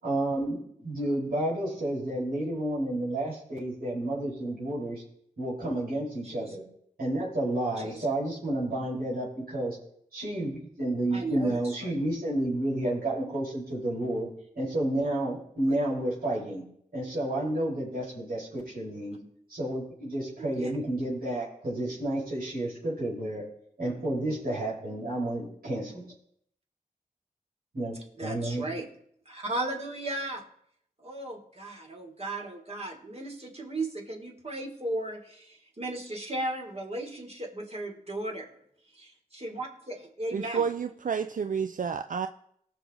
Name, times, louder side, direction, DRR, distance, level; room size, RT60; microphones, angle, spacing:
voice 1, 0.0-5.0 5.4-6.6 7.0-9.8 10.1-14.3 14.5-16.6 16.9-19.2 19.5-23.5 23.8-26.0 27.7-27.9 28.2-28.6, right 1 dB, 85° right, -6 dB, 5.2 m, -30 dB
voice 2, 11.1-11.9 20.4-20.7 28.2-28.9 29.2-30.4 31.0-38.5 38.9-40.7, right 2 dB, 45° right, 0 dB, 3.1 m, -36 dB
voice 3, 40.3-42.3, right 6 dB, 65° right, 9 dB, 0.5 m, -30 dB
18.5 x 6.5 x 3.9 m, 0.69 s
cardioid pair, 45°, 15 cm